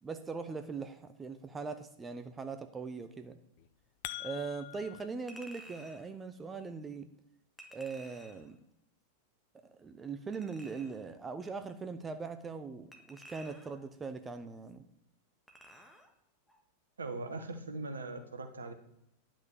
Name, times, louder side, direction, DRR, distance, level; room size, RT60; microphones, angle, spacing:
voice 1, 0.0-3.4 4.2-7.1 7.7-8.6 9.6-14.8, right 4 dB, 15° right, 9 dB, 0.8 m, -41 dB
sound 1, 3.6-5.1, left 16 dB, 45° left, 0.5 m, -43 dB
Chink clink, 5.3-6.1 7.6-8.5 10.3-11.1 12.9-13.9 15.5-16.1 16.5-16.6, right 1 dB, ahead, 1.6 m, -53 dB
voice 2, 17.0-18.7, right 3 dB, 75° right, 7 dB, 1.4 m, -40 dB
10.5 x 6.1 x 7.0 m, 0.79 s
figure-of-eight pair, 90°, 0 cm